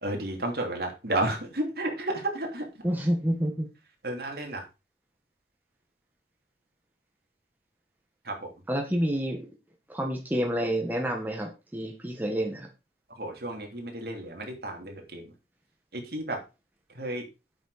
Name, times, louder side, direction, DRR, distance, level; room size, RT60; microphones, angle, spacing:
voice 1, 0.0-2.6 4.0-4.6 8.3-8.4 13.2-15.2 15.9-16.4 17.0-17.2, right 1 dB, 60° right, 2 dB, 3.1 m, -32 dB
voice 2, 2.8-3.7 8.7-9.4 9.9-12.7, equal, 10° right, 1 dB, 1.5 m, -28 dB
8.6 x 6.3 x 5.0 m, 0.29 s
head